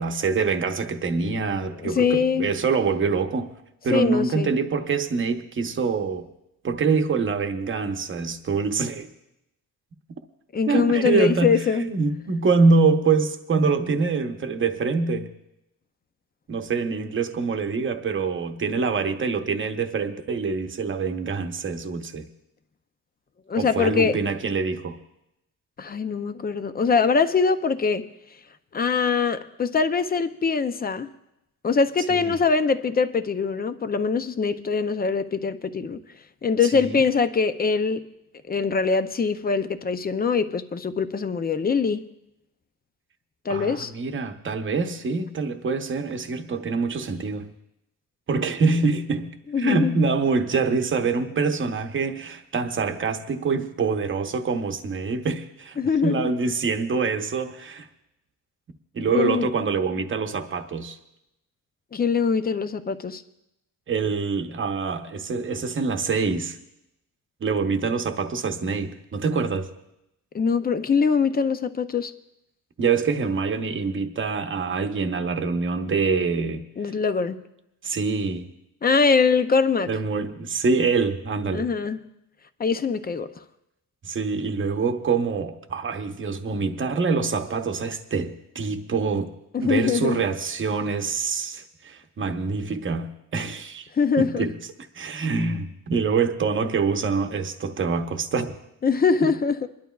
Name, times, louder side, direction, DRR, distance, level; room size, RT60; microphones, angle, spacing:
voice 1, 0.0-3.5 3.8-6.2 6.6-9.1 10.7-15.3 16.5-22.3 23.6-25.0 32.1-32.4 36.7-37.0 43.5-47.5 48.3-49.3 49.6-57.9 58.9-61.0 63.9-66.6 67.4-69.7 72.8-76.6 77.8-78.5 79.9-81.7 84.0-89.3 89.6-93.9 94.2-94.6 94.9-98.6 99.2-99.3, right 4 dB, 35° right, 0.9 m, -25 dB
voice 2, 1.8-2.5 3.9-4.6 10.5-11.8 23.5-24.2 25.8-28.1 28.7-31.1 31.6-36.0 36.4-38.0 38.5-42.0 43.5-43.9 49.5-50.0 55.8-56.3 59.1-59.5 61.9-63.2 70.3-72.1 76.8-77.4 78.8-79.9 81.5-82.0 82.6-83.3 89.5-90.3 93.9-94.5 98.8-99.7, left 5 dB, 30° left, 0.4 m, -23 dB
29.0 x 11.5 x 2.3 m
wide cardioid pair, 140°, 33 cm